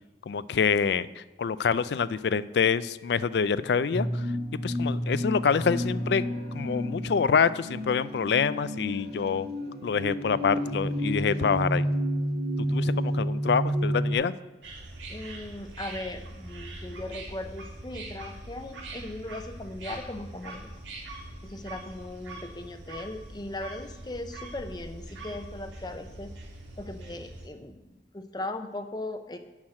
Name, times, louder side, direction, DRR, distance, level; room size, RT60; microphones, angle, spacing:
voice 1, 0.3-4.2 4.6-6.2 6.5-9.5 9.8-11.9 12.7-14.3, left 6 dB, 65° left, 16 dB, 0.3 m, -26 dB
sound 1, 3.9-14.1, equal, 60° right, 1.5 m, -30 dB
sound 2, 14.6-27.5, right 2 dB, 85° right, 2.3 m, -43 dB
voice 2, 15.1-20.8 21.4-26.3 26.8-29.4, left 2 dB, 20° left, 8 dB, 0.6 m, -38 dB
7.2 x 6.3 x 7.6 m, 1.1 s
head